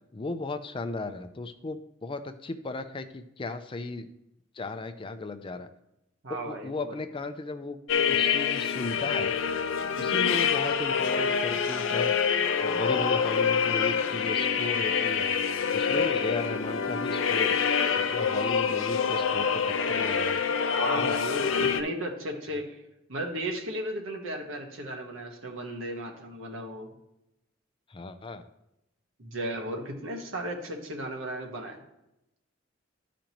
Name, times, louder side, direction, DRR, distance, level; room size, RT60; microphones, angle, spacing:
voice 1, 0.1-4.1 4.5-5.7 6.4-7.8 8.1-9.4 10.0-12.1 12.6-15.3 15.7-17.6 17.9-20.4 20.9-21.2 27.9-28.5, left 3 dB, 25° left, 9 dB, 0.5 m, -36 dB
voice 2, 6.2-6.9 20.7-22.8 23.1-26.9 29.2-31.8, right 1 dB, 90° right, 1 dB, 1.4 m, -35 dB
sound 1, 7.9-21.8, left 6 dB, 80° left, 0.6 m, -26 dB
12.0 x 5.1 x 3.0 m, 0.87 s
head